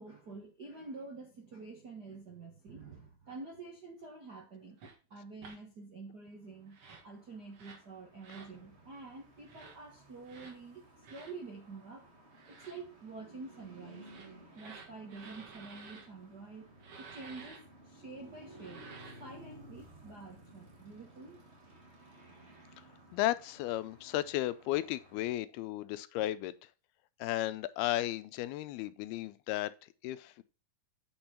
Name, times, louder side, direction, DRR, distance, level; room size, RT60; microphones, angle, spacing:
voice 1, 0.0-4.8 5.1-12.0 12.4-14.1 14.5-21.4, right 3 dB, 85° right, 0.9 m, -48 dB
sound 1, 4.8-5.0 5.4-5.6 6.7-7.1 7.5-7.9 8.2-8.5 9.4-9.8 10.3-10.6 11.0-11.3 12.3-12.8 13.9-16.1 16.8-17.6 18.5-19.3, right 4 dB, 45° right, 2.2 m, -52 dB
sound 2, 6.5-25.3, right 1 dB, 20° right, 2.0 m, -57 dB
voice 2, 23.1-26.7 27.2-30.4, left 15 dB, 85° left, 2.5 m, -34 dB
8.9 x 6.1 x 4.4 m
omnidirectional pair, 4.5 m